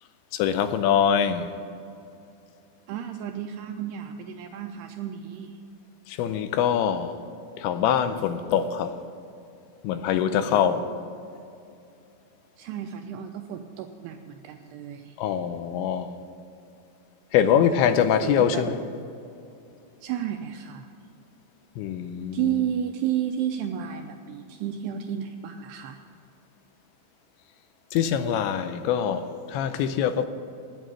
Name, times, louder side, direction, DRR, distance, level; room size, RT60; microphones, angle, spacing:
voice 1, 0.3-1.5 6.1-7.2 7.6-9.0 9.8-10.9 15.2-16.1 17.3-18.8 21.8-22.5 27.9-30.3, left 8 dB, 85° left, 2.8 m, -24 dB
voice 2, 2.9-5.6 10.4-11.1 12.6-15.2 18.2-18.7 20.0-20.9 22.3-26.0, right 10 dB, 85° right, 2.4 m, -32 dB
9.0 x 9.0 x 9.3 m
omnidirectional pair, 5.2 m